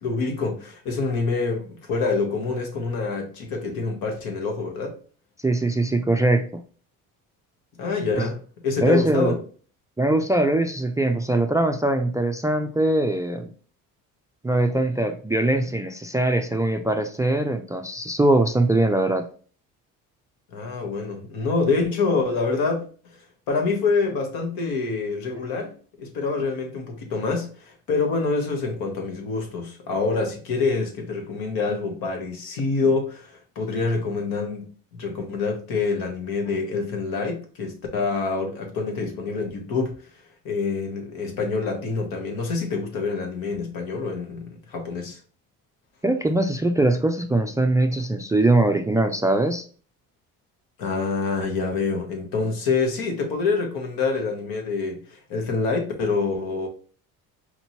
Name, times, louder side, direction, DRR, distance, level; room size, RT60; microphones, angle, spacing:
voice 1, 0.0-5.0 7.8-9.4 20.5-23.1 23.5-39.9 40.4-45.2 50.8-56.7, left 4 dB, 80° left, 1.2 m, -26 dB
voice 2, 5.4-6.6 8.8-9.4 10.0-13.5 14.4-19.3 46.0-49.7, right 2 dB, 10° right, 0.3 m, -22 dB
4.4 x 2.9 x 2.7 m
supercardioid pair, 80°, 36 cm